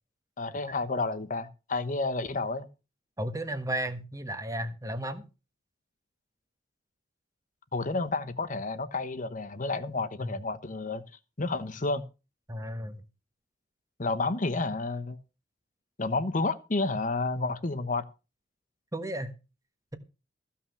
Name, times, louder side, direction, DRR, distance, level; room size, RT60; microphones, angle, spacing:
voice 1, 0.4-2.7 7.7-11.0 11.4-12.0 14.0-15.2 16.0-18.0, left 3 dB, 40° left, 1.0 m, -30 dB
voice 2, 3.2-5.2 10.2-10.3 12.5-13.0 18.9-19.4, right 1 dB, 15° right, 1.3 m, -34 dB
15.0 x 5.8 x 7.1 m
head